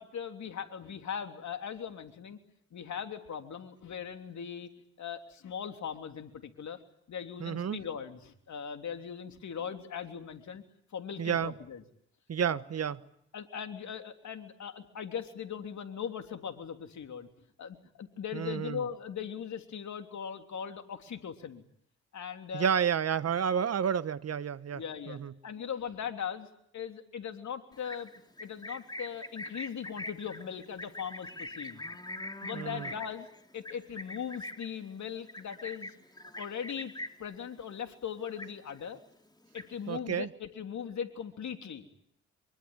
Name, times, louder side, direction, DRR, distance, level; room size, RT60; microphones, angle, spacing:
voice 1, 0.0-2.4 2.7-4.7 5.0-6.8 7.1-10.6 10.9-11.8 12.5-12.6 13.3-17.3 17.6-21.6 22.1-22.7 24.7-25.2 25.4-26.5 26.7-28.1 28.4-31.8 32.4-33.3 33.5-35.9 36.4-36.9 37.2-39.0 39.5-41.9, left 7 dB, 60° left, 3.4 m, -39 dB
voice 2, 7.4-7.8 11.2-11.5 12.3-13.0 18.3-18.8 22.5-25.3 32.5-32.9 39.9-40.3, right 7 dB, 50° right, 1.3 m, -30 dB
Livestock farm animals working animals, 27.7-37.3 37.7-38.0 38.2-38.9 39.3-40.0, left 1 dB, 15° left, 3.1 m, -43 dB
25.5 x 24.0 x 9.1 m
hypercardioid pair, 45°, 32 cm